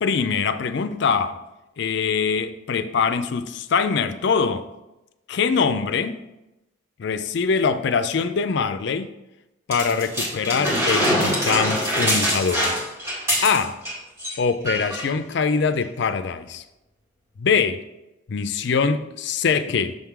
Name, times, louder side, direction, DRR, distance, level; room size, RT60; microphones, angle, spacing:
voice 1, 0.0-1.3 1.8-4.6 5.3-6.2 7.0-9.1 9.7-12.7 13.4-13.8 14.4-16.6 17.4-17.8 18.3-20.0, left 5 dB, 60° left, 11 dB, 0.4 m, -23 dB
sound 1, 9.7-13.9 14.2-14.4 14.7-15.1 15.8-15.9, equal, 15° right, 1.8 m, -23 dB
6.5 x 3.6 x 4.6 m, 0.96 s
head